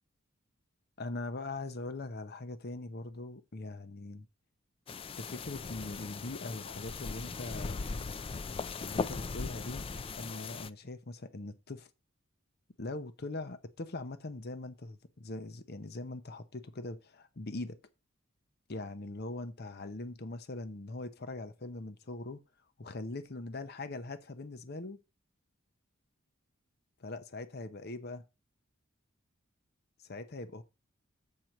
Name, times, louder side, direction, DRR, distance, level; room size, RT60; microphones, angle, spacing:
voice 1, 1.0-4.3 5.1-7.8 8.8-9.9 10.2-11.9 12.8-17.8 18.7-22.4 22.8-25.0 27.0-28.2 30.0-30.6, left 2 dB, 50° left, 0.8 m, -41 dB
sound 1, 4.9-10.7, left 4 dB, 25° left, 0.3 m, -39 dB
7.6 x 4.5 x 6.4 m
head